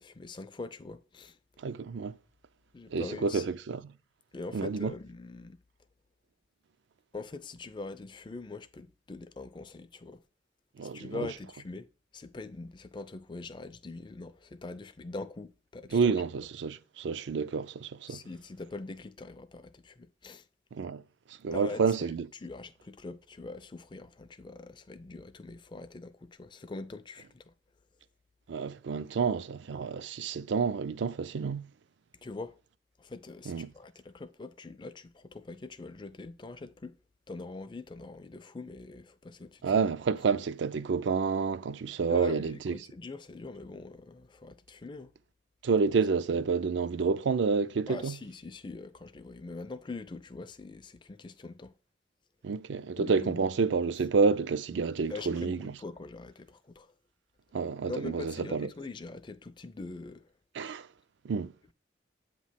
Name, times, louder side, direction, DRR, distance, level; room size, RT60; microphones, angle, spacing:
voice 1, 0.0-1.4 2.7-3.5 4.3-5.6 7.1-10.2 10.8-11.9 12.1-16.2 18.1-20.5 21.5-22.1 22.4-27.5 32.2-32.6 33.0-37.0 37.3-39.8 42.1-45.1 47.9-51.7 52.9-53.5 55.1-56.9 57.9-60.3, left 3 dB, 25° left, 0.4 m, -43 dB
voice 2, 1.6-2.1 2.9-3.8 4.5-4.9 10.8-11.3 15.9-18.2 20.7-21.0 21.4-22.3 28.5-31.7 33.5-33.7 39.6-42.8 45.6-48.1 52.4-55.7 57.5-58.7 60.5-60.9 61.2-61.5, right 5 dB, 70° right, 0.4 m, -29 dB
8.0 x 3.1 x 5.6 m
head